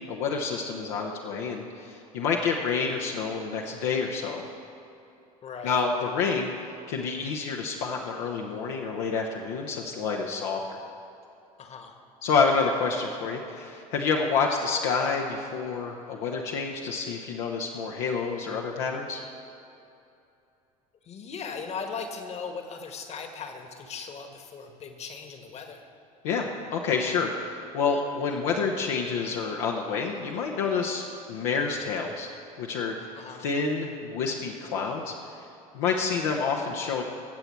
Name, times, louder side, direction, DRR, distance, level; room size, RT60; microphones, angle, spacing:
voice 1, 0.0-4.5 5.6-6.5 6.9-10.6 12.2-19.2 26.2-32.3 32.6-33.0 33.4-35.4 35.7-37.0, left 5 dB, 60° left, 0 dB, 1.0 m, -28 dB
voice 2, 5.4-5.8 11.6-11.9 21.0-25.8 33.2-33.5, left 5 dB, 35° left, 5 dB, 1.5 m, -38 dB
20.5 x 8.0 x 4.5 m, 2.7 s
figure-of-eight pair, 65°, 19 cm